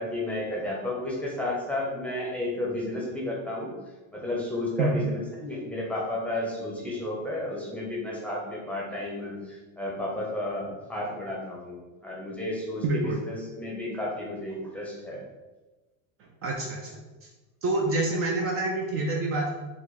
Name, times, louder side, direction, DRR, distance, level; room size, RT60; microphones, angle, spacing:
voice 1, 0.0-3.7 4.1-15.2, left 1 dB, 5° left, -3 dB, 0.8 m, -32 dB
voice 2, 12.8-13.2 16.2-16.9 17.6-19.6, right 2 dB, 35° right, 0 dB, 0.6 m, -27 dB
4.9 x 2.2 x 4.0 m, 1.2 s
supercardioid pair, 140°, 40 cm